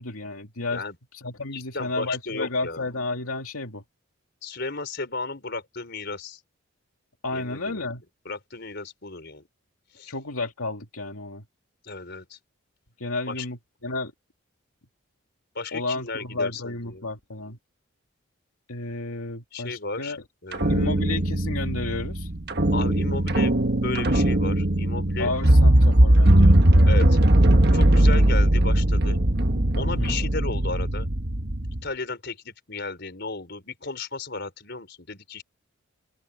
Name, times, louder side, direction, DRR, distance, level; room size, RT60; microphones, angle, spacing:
voice 1, 0.0-0.8 1.1-3.8 7.2-8.0 10.1-11.4 13.0-14.1 15.7-17.6 18.7-20.2 20.7-22.3 25.2-26.5 29.8-30.2, left 3 dB, 90° left, 2.5 m, -32 dB
voice 2, 1.5-2.8 4.4-6.4 7.3-7.9 8.2-9.5 9.9-10.1 11.8-12.4 13.3-13.4 15.5-17.1 19.5-20.2 20.4-21.0 22.7-23.5 23.8-25.3 26.9-27.2 27.7-29.2 29.7-31.1 31.8-35.4, left 3 dB, 50° left, 4.8 m, -34 dB
sound 1, 20.5-31.8, right 1 dB, 50° right, 1.4 m, -19 dB
open air
head